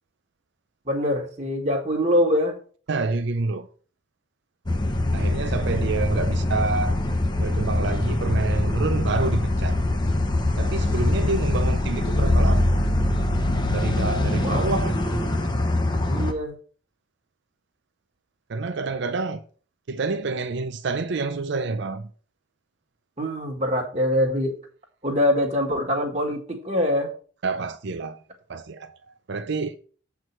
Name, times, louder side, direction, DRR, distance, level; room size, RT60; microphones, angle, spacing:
voice 1, 0.9-2.6 14.4-14.7 16.0-16.5 23.2-24.6 25.0-27.1, left 1 dB, 35° right, 1.7 m, -24 dB
voice 2, 2.9-3.7 5.1-7.0 7.4-9.8 10.6-12.6 13.7-15.0 18.5-19.4 19.9-22.1 27.4-28.2 28.5-28.9 29.3-29.8, right 3 dB, 60° right, 0.5 m, -27 dB
sound 1, 4.7-16.3, left 1 dB, 20° left, 1.0 m, -23 dB
8.0 x 4.7 x 5.8 m
head